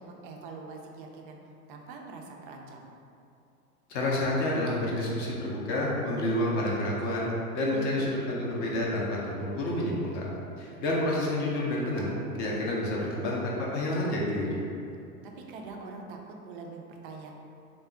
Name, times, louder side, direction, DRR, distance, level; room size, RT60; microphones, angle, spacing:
voice 1, 0.1-1.4 1.7-2.9 7.7-7.9 15.2-17.4, right 4 dB, 40° right, 1 dB, 0.4 m, -43 dB
voice 2, 3.9-7.3 7.5-10.3 10.6-14.6, left 1 dB, 25° left, -4 dB, 0.4 m, -29 dB
3.6 x 2.0 x 3.6 m, 2.6 s
figure-of-eight pair, 90°, 45 cm